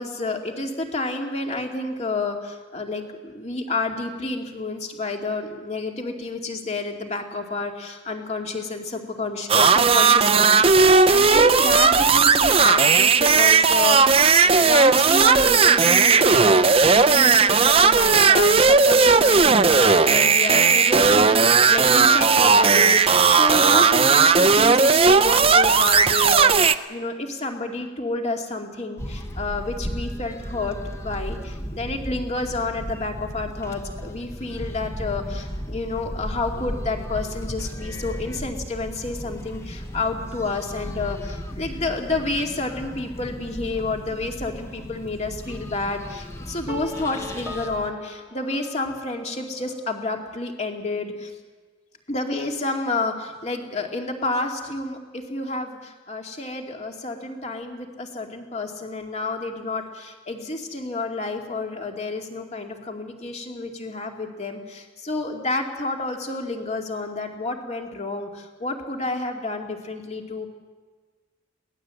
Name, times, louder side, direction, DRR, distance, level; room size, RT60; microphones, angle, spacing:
voice 1, 0.0-30.8 31.0-51.3 52.1-70.5, left 3 dB, 35° left, 2 dB, 2.5 m, -30 dB
sound 1, 9.5-26.7, right 5 dB, 30° right, 0.6 m, -16 dB
sound 2, 29.0-47.9, equal, 15° left, 1.1 m, -35 dB
sound 3, 46.7-49.6, left 1 dB, 10° right, 1.3 m, -40 dB
22.5 x 18.0 x 7.8 m, 1.4 s
head